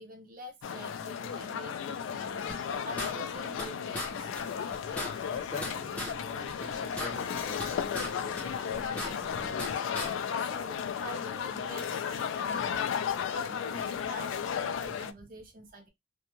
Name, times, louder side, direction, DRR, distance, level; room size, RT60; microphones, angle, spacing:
voice 1, 0.0-2.2 2.8-4.3 10.4-15.9, right 1 dB, 45° right, 0.6 m, -46 dB
sound 1, 0.6-15.1, left 7 dB, 85° left, 0.3 m, -34 dB
sound 2, 2.1-10.1, right 2 dB, 85° right, 1.0 m, -51 dB
sound 3, 2.5-3.7 3.9-4.1 4.4-4.5 4.7-6.1 6.5-8.1 8.4-9.7 9.9-10.1, left 1 dB, 5° left, 0.7 m, -37 dB
voice 2, 5.3-5.9 6.6-9.7, left 2 dB, 40° left, 0.8 m, -44 dB
2.5 x 2.1 x 2.9 m
head